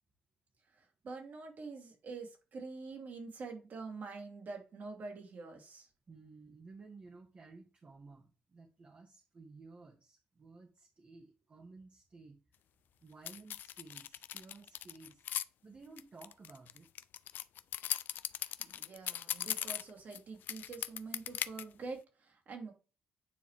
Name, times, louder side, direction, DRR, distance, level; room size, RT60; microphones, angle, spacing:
voice 1, 0.6-5.9 18.6-22.7, right 4 dB, 60° right, 2 dB, 2.7 m, -46 dB
voice 2, 6.1-12.4 13.0-15.2 15.6-16.9, right 3 dB, 45° right, 1 dB, 1.6 m, -55 dB
sound 1, 13.3-15.4 16.0-20.2 20.5-21.6, left 11 dB, 70° left, 0.3 m, -38 dB
9.1 x 4.2 x 3.3 m, 0.33 s
supercardioid pair, 55°, 3 cm